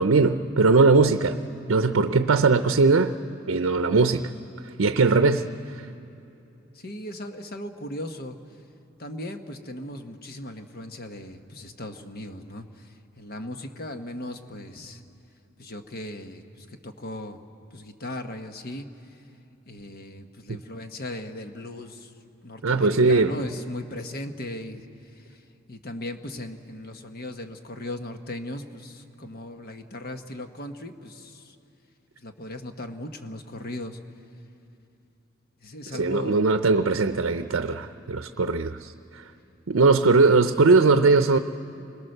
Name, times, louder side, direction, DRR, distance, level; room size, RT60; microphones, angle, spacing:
voice 1, 0.0-1.4 1.7-3.2 3.5-4.3 4.8-5.8 22.6-23.3 36.0-39.2 39.7-41.4, right 3 dB, 75° right, 9 dB, 0.6 m, -20 dB
voice 2, 6.7-8.4 9.0-15.0 15.6-17.4 17.7-19.2 19.7-22.1 22.4-25.4 25.7-31.6 32.2-34.0 35.6-36.4, left 1 dB, 45° left, 6 dB, 1.2 m, -38 dB
29.0 x 22.0 x 6.7 m, 2.8 s
head